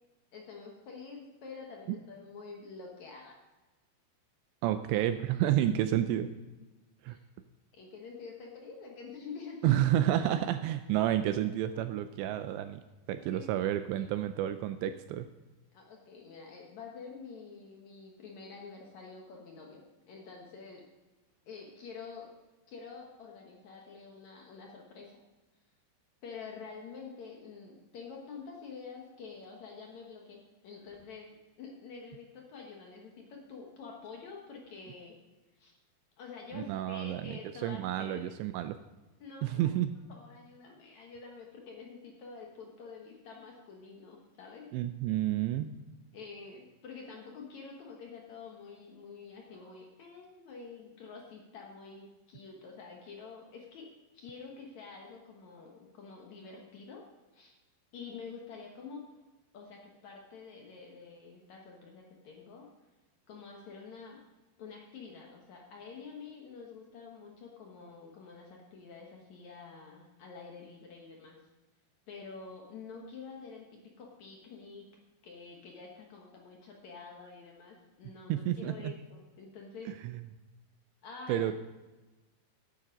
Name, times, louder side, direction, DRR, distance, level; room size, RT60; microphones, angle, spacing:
voice 1, 0.3-3.3 7.1-7.2 7.7-9.8 13.3-13.6 14.0-14.3 15.7-20.8 21.4-22.3 22.7-25.2 26.2-31.3 31.6-35.1 35.5-35.7 36.2-38.3 39.2-39.8 40.1-44.7 46.1-53.9 54.1-57.0 57.3-57.5 57.9-59.2 59.5-62.7 63.3-64.2 64.6-71.4 72.1-74.9 75.2-79.9 81.0-81.5, left 5 dB, 75° left, 0 dB, 1.6 m, -48 dB
voice 2, 4.6-6.3 7.0-7.2 9.6-12.8 13.1-15.3 36.5-38.8 39.4-39.9 44.7-45.7 78.3-78.9 81.3-81.5, right 12 dB, 85° right, 10 dB, 2.6 m, -30 dB
10.0 x 9.4 x 5.1 m, 1.2 s
omnidirectional pair, 5.3 m